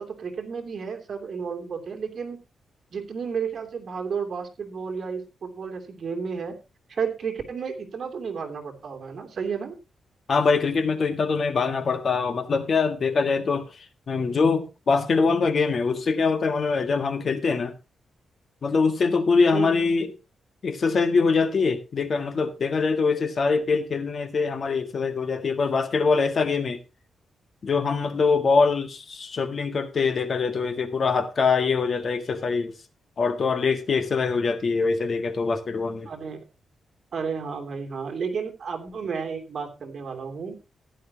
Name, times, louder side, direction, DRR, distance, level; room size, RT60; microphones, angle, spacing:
voice 1, 0.0-2.4 2.9-6.5 6.9-9.7 19.5-19.8 36.1-36.4 37.1-40.6, right 6 dB, 50° right, 3.0 m, -32 dB
voice 2, 10.3-13.7 14.1-17.7 18.6-20.1 20.6-26.8 27.6-32.7 33.2-36.1, left 4 dB, 45° left, 1.6 m, -23 dB
15.0 x 11.0 x 2.9 m
wide cardioid pair, 150°, 0 cm